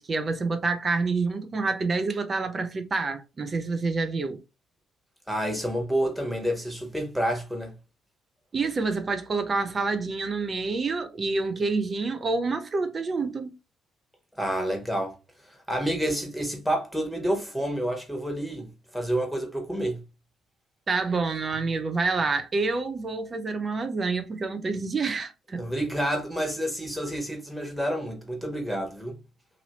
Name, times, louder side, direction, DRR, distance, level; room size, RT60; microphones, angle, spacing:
voice 1, 0.0-4.4 8.5-13.5 20.9-25.7, right 3 dB, 40° right, 0.6 m, -28 dB
voice 2, 5.3-7.7 14.4-15.1 15.7-18.7 18.9-20.0 25.6-29.2, equal, ahead, 1.4 m, -29 dB
2.8 x 2.8 x 2.9 m
figure-of-eight pair, 45°, 0 cm